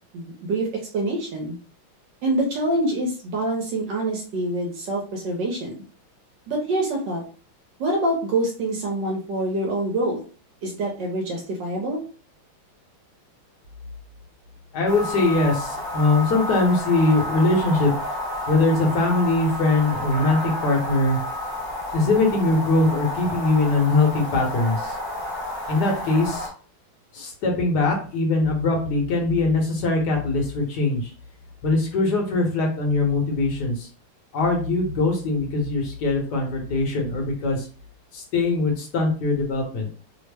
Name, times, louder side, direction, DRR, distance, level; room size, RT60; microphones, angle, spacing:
voice 1, 0.1-1.5 2.2-5.8 6.5-7.2 7.8-10.2 10.6-12.0, right 1 dB, 65° right, -1 dB, 1.2 m, -26 dB
voice 2, 14.7-17.9 18.5-21.2 21.9-24.9 25.7-26.5 27.1-31.0 31.6-33.7 34.3-37.6 38.1-39.9, left 2 dB, 60° left, 1 dB, 1.3 m, -21 dB
sound 1, 14.9-26.5, left 1 dB, 40° right, 0.6 m, -31 dB
3.4 x 2.0 x 3.3 m, 0.39 s
omnidirectional pair, 2.4 m